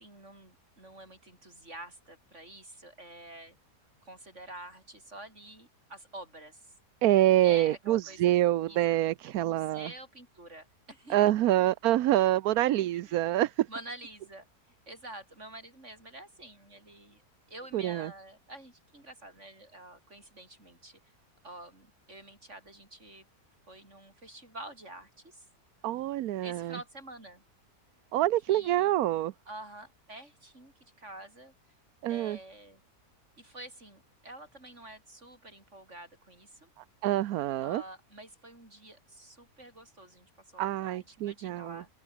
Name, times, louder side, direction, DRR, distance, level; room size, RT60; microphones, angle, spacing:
voice 1, 0.0-3.6 4.0-6.7 7.4-8.3 8.7-8.8 9.4-11.5 12.9-13.2 13.7-17.2 17.5-21.1 21.4-23.2 23.7-25.5 26.4-27.4 28.5-29.0 29.5-31.5 32.0-32.8 33.4-36.7 37.6-42.0, right 1 dB, 50° right, 7.5 m, -48 dB
voice 2, 7.0-9.9 11.1-13.7 17.7-18.1 25.8-26.8 28.1-29.3 32.0-32.4 37.0-37.8 40.6-41.8, right 14 dB, 75° right, 1.1 m, -26 dB
open air
omnidirectional pair, 1.6 m